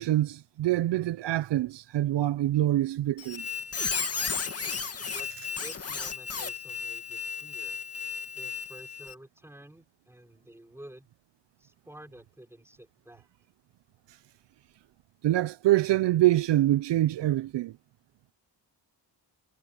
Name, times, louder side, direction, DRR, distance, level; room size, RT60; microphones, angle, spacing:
voice 1, 0.0-3.5 5.0-5.1 15.2-17.7, right 14 dB, 75° right, 0.5 m, -25 dB
Squeak, 3.2-9.1, left 5 dB, 35° left, 2.0 m, -34 dB
voice 2, 5.6-7.8 8.3-11.1 11.6-13.3, right 1 dB, 5° right, 4.8 m, -50 dB
wide cardioid pair, 160°, 43 cm